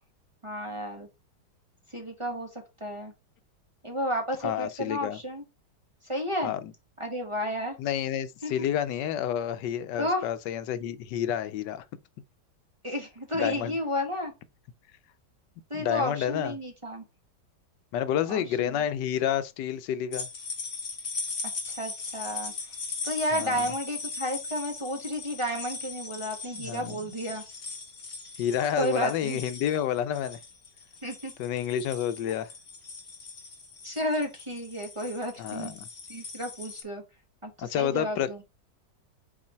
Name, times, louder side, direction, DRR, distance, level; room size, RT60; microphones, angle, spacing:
voice 1, 0.4-1.1 1.9-3.1 3.8-5.4 6.1-6.5 7.0-7.8 8.4-8.5 10.0-10.3 12.8-14.3 15.7-17.0 18.3-18.7 21.6-22.5 23.0-27.4 28.8-29.4 31.0-31.3 32.3-32.4 33.8-35.7 36.1-37.0 37.4-38.4, equal, 20° right, 1.1 m, -32 dB
voice 2, 4.4-5.2 6.4-6.7 7.8-11.8 13.3-13.7 15.7-16.5 17.9-20.3 23.3-23.7 26.6-27.0 28.4-30.4 31.4-32.5 35.4-35.8 37.6-38.3, left 10 dB, 80° left, 1.3 m, -29 dB
sound 1, 20.1-36.8, left 4 dB, 45° left, 1.8 m, -39 dB
6.1 x 4.0 x 4.4 m
omnidirectional pair, 1.9 m